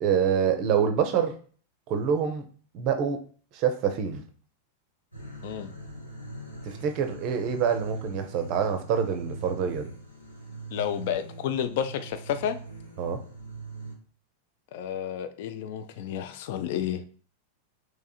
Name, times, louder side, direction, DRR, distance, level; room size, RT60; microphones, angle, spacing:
voice 1, 0.0-1.3 1.9-2.4 2.7-3.2 3.5-4.2 6.7-9.9 13.0-13.2, right 7 dB, 40° right, 6 dB, 0.5 m, -26 dB
sound 1, 5.1-13.9, right 3 dB, 85° left, 0.9 m, -42 dB
voice 2, 10.7-12.6 14.7-17.0, left 9 dB, 50° left, 10 dB, 0.3 m, -31 dB
3.6 x 3.1 x 2.3 m, 0.43 s
figure-of-eight pair, 90°, 0 cm